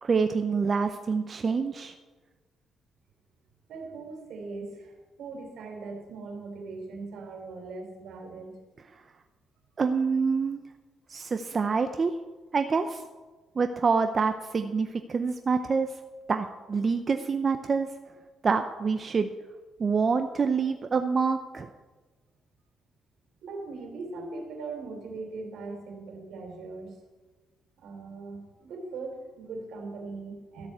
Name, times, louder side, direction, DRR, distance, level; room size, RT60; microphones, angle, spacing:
voice 1, 0.0-1.9 9.8-10.6 11.1-12.1 12.5-13.0 13.6-15.9 16.3-17.9 18.4-19.3 19.8-21.7, right 5 dB, 40° right, 7 dB, 0.7 m, -26 dB
voice 2, 3.7-8.6 23.4-26.9 27.8-30.7, right 3 dB, 75° right, 3 dB, 3.2 m, -40 dB
13.0 x 6.8 x 8.1 m, 1.3 s
cardioid pair, 90°, 0 cm